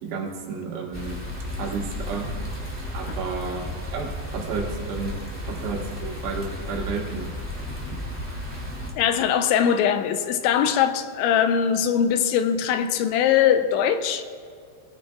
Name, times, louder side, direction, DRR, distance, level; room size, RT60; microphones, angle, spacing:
voice 1, 0.0-1.2 1.6-2.3 2.9-5.1 5.5-7.3, right 5 dB, 80° right, 0 dB, 4.0 m, -32 dB
sound 1, 0.9-8.9, left 1 dB, 5° left, 0.9 m, -33 dB
voice 2, 9.0-14.2, left 8 dB, 85° left, 9 dB, 2.9 m, -21 dB
21.0 x 15.0 x 2.4 m, 2.3 s
omnidirectional pair, 5.4 m